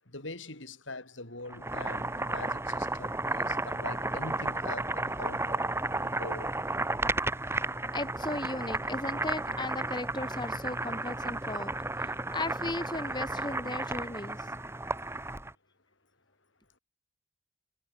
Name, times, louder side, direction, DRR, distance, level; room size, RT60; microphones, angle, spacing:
voice 1, 0.1-5.7 6.0-6.6, left 2 dB, 70° left, 8.0 m, -43 dB
Boiling, 1.5-15.5, right 2 dB, 15° right, 2.4 m, -33 dB
voice 2, 7.9-14.5, left 2 dB, 20° left, 2.4 m, -37 dB
head